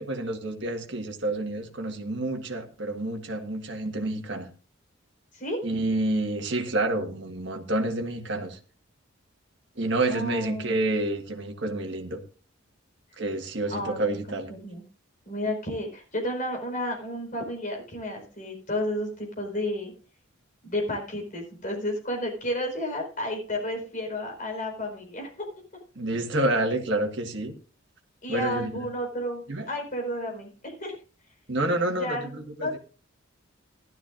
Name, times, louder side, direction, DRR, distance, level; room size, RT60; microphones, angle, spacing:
voice 1, 0.0-4.5 5.6-8.6 9.7-12.2 13.2-14.5 25.9-27.5 28.3-28.9 29.5-29.7 31.5-32.8, right 2 dB, 55° right, 1.6 m, -28 dB
voice 2, 10.1-10.9 13.7-14.8 15.2-19.9 20.6-25.3 28.2-30.9 32.0-32.8, left 1 dB, 40° left, 4.7 m, -32 dB
15.5 x 12.5 x 2.5 m
head